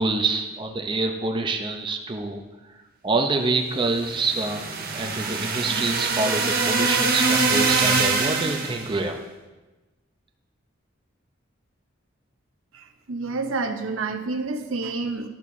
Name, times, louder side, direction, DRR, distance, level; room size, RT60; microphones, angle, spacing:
voice 1, 0.0-2.4 3.0-4.6 4.9-9.2, right 3 dB, 25° right, 3 dB, 0.6 m, -26 dB
sound 1, 3.9-8.9, right 4 dB, 50° right, 1.0 m, -23 dB
voice 2, 12.7-15.3, right 3 dB, 80° right, 7 dB, 0.7 m, -29 dB
11.5 x 7.1 x 2.7 m, 1.1 s
head